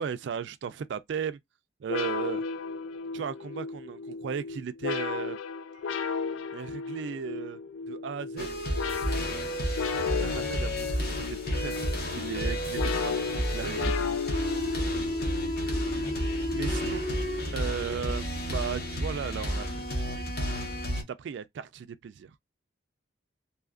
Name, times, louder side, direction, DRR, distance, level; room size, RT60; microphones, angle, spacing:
voice 1, 0.0-1.4 1.8-2.4 3.1-5.4 6.0-6.1 6.5-7.6 7.9-8.5 9.9-14.2 16.5-17.1 17.5-20.4 20.9-22.3, right 7 dB, 65° right, 0.3 m, -36 dB
sound 1, 1.9-18.1, left 6 dB, 85° left, 0.4 m, -35 dB
sound 2, 8.4-21.0, equal, 50° left, 0.9 m, -31 dB
2.7 x 2.4 x 2.3 m
head